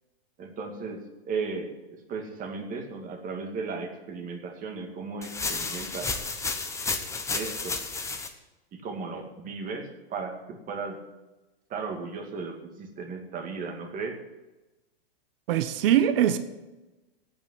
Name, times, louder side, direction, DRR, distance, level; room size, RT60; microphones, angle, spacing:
voice 1, 0.4-1.0 1.3-1.7 2.1-6.1 7.3-7.8 8.7-11.0 11.7-14.2, right 4 dB, 25° right, 4 dB, 2.2 m, -35 dB
sound 1, 5.2-8.3, left 4 dB, 10° left, 1.0 m, -32 dB
voice 2, 15.5-16.4, right 10 dB, 60° right, 11 dB, 1.1 m, -22 dB
8.8 x 8.8 x 9.5 m, 1.1 s
hypercardioid pair, 130°, 31 cm